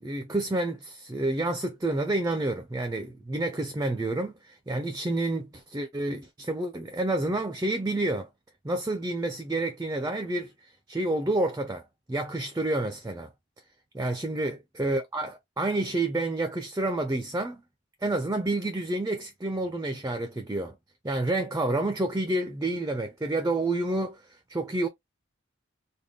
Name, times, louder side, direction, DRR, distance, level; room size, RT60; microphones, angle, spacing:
voice 1, 0.0-8.3 8.6-13.3 13.9-17.6 18.0-20.8 21.0-24.2 24.5-24.9, right 2 dB, 15° right, 0.4 m, -29 dB
3.5 x 2.1 x 3.5 m
head